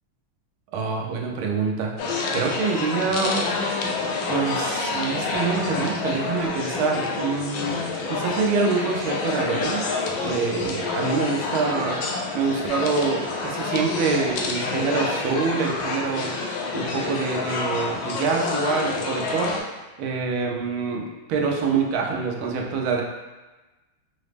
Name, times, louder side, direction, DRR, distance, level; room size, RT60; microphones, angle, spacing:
voice 1, 0.7-1.9 2.3-3.5 4.3-7.8 8.1-9.8 10.2-12.0 12.3-16.3 16.7-19.5 20.0-23.0, right 5 dB, 80° right, 0 dB, 1.4 m, -25 dB
sound 1, 2.0-19.6, left 3 dB, 75° left, 1.2 m, -28 dB
4.8 x 2.0 x 3.3 m, 1.2 s
omnidirectional pair, 2.4 m